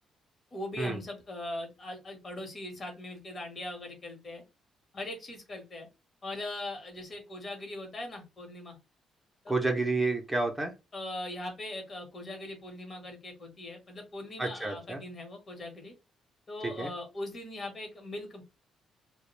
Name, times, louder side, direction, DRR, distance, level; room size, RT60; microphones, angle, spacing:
voice 1, 0.5-4.4 4.9-5.9 6.2-8.8 9.4-9.5 10.9-15.9 16.5-18.4, left 1 dB, 45° left, 3 dB, 1.0 m, -40 dB
voice 2, 9.5-10.7 14.4-15.0 16.6-16.9, right 3 dB, 10° right, 3 dB, 0.6 m, -30 dB
2.2 x 2.1 x 3.1 m, 0.26 s
cardioid pair, 90°, 0 cm